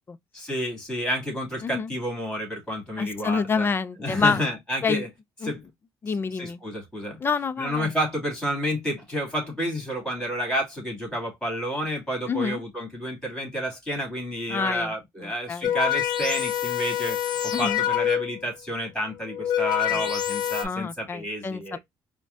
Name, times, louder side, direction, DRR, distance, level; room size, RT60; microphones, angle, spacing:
voice 1, 0.3-3.7 4.0-5.1 5.4-5.6 6.3-7.2 7.6-21.8, equal, 5° left, 2.4 m, -30 dB
voice 2, 3.0-4.4 4.8-5.0 5.4-5.5 6.0-6.6 7.2-7.9 12.3-12.6 14.5-14.9 15.2-15.7 17.5-17.8 19.9-20.0 20.6-21.8, left 5 dB, 25° left, 0.4 m, -27 dB
sound 1, 15.6-18.5 19.2-20.6, left 11 dB, 55° left, 0.8 m, -26 dB
4.6 x 2.1 x 2.5 m
cardioid pair, 120°, 9 cm